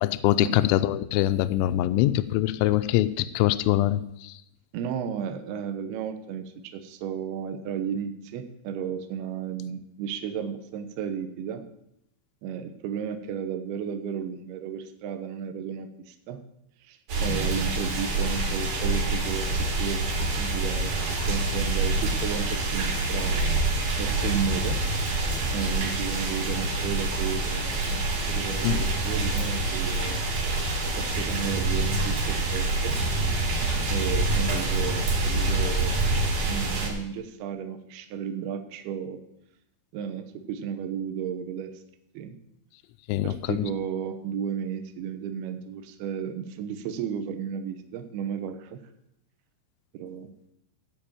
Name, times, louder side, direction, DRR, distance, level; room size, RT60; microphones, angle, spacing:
voice 1, 0.0-4.4 28.6-28.8 43.1-43.7, left 14 dB, 85° left, 10 dB, 2.8 m, -24 dB
voice 2, 4.7-11.6 12.4-16.4 16.8-19.5 19.8-21.0 21.3-23.3 24.0-24.8 25.5-30.2 31.0-33.0 33.9-36.0 36.5-39.2 39.9-41.8 42.1-42.4 43.2-48.8 49.9-50.3, right 8 dB, 75° right, 7 dB, 2.5 m, -33 dB
sound 1, 17.1-36.9, right 2 dB, 55° right, 4.6 m, -26 dB
15.0 x 5.2 x 8.7 m, 0.78 s
omnidirectional pair, 5.5 m